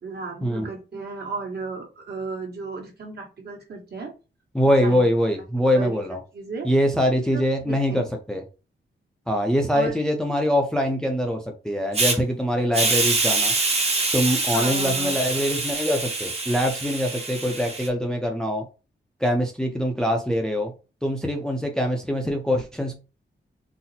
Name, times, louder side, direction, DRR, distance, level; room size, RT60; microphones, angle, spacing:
voice 1, 0.0-4.1 4.8-5.1 5.7-6.0 6.3-6.7 7.3-8.0 9.7-10.0 14.5-15.2, right 4 dB, 55° right, 0 dB, 1.2 m, -34 dB
voice 2, 4.5-6.2 6.6-8.4 9.3-13.5 14.1-18.7 19.2-20.7 21.0-23.0, equal, 5° left, 2 dB, 0.5 m, -23 dB
Hiss, 11.9-12.1 12.7-17.9, right 3 dB, 30° right, 0.8 m, -25 dB
4.0 x 2.0 x 2.7 m, 0.31 s
wide cardioid pair, 125°, 20 cm